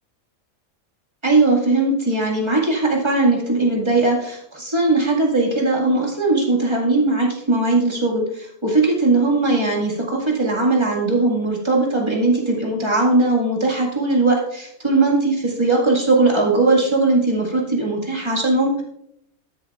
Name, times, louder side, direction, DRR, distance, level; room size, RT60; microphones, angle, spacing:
voice 1, 1.2-18.8, right 2 dB, 20° right, -2 dB, 1.9 m, -19 dB
12.5 x 7.0 x 2.4 m, 0.74 s
omnidirectional pair, 1.5 m